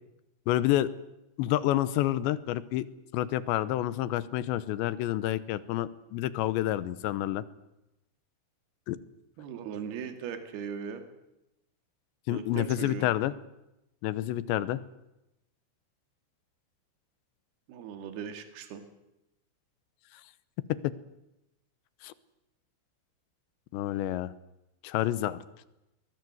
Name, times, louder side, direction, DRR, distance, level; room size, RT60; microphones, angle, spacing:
voice 1, 0.5-0.9 1.4-2.9 3.1-7.4 8.9-9.0 12.3-13.3 14.0-14.8 20.8-20.9 22.0-22.1 23.7-24.3 24.8-25.4, left 14 dB, 75° left, 16 dB, 3.0 m, -28 dB
voice 2, 9.4-11.0 12.3-13.1 17.7-18.8, right 7 dB, 60° right, 7 dB, 4.0 m, -38 dB
23.0 x 21.0 x 7.9 m, 0.89 s
omnidirectional pair, 5.5 m